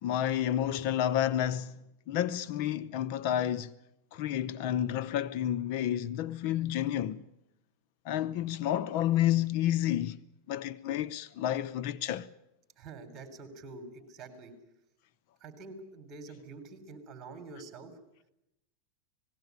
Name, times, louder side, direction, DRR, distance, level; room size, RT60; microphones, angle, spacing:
voice 1, 0.0-1.8 2.1-3.7 4.1-7.2 8.0-10.2 10.5-12.3, left 11 dB, 55° left, 0.7 m, -30 dB
voice 2, 12.8-14.5 15.4-17.9, right 3 dB, 30° right, 3.5 m, -46 dB
19.5 x 16.5 x 9.4 m
supercardioid pair, 135°, 0 cm